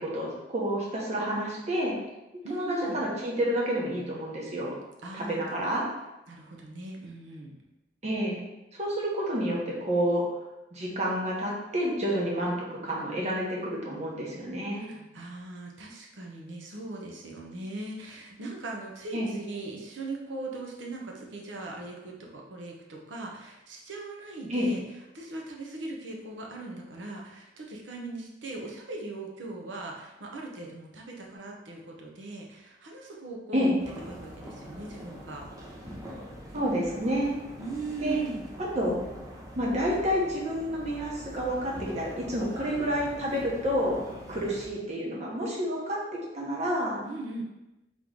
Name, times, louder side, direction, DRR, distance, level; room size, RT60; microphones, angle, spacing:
voice 1, 0.0-2.0 2.5-4.7 5.1-5.8 8.0-8.4 8.7-10.3 10.7-14.9 19.1-19.3 24.5-24.7 33.5-33.7 36.5-37.3 38.0-38.2 38.6-39.0 39.5-44.0 44.3-46.0 46.3-47.0, equal, 40° right, -3 dB, 1.0 m, -29 dB
voice 2, 2.4-3.1 5.0-5.7 6.3-7.5 14.7-24.8 25.1-33.8 34.1-35.5 37.6-38.4 47.0-47.4, right 2 dB, 85° right, 0 dB, 0.8 m, -39 dB
sound 1, 33.8-44.7, equal, 20° right, 0.6 m, -44 dB
3.7 x 3.1 x 3.8 m, 1.0 s
head